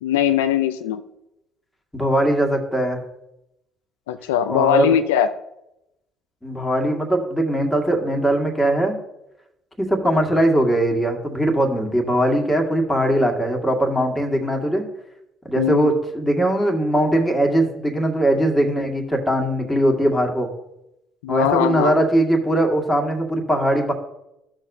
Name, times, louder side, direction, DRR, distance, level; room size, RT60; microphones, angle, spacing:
voice 1, 0.0-1.0 4.1-5.3 15.6-16.0 21.2-22.0, left 10 dB, 85° left, 9 dB, 0.4 m, -20 dB
voice 2, 1.9-3.0 4.5-4.9 6.4-8.9 9.8-14.8 15.5-20.5 21.3-23.9, right 1 dB, 5° left, 1 dB, 2.0 m, -20 dB
13.0 x 6.4 x 2.7 m, 0.87 s
hypercardioid pair, 60°, 0 cm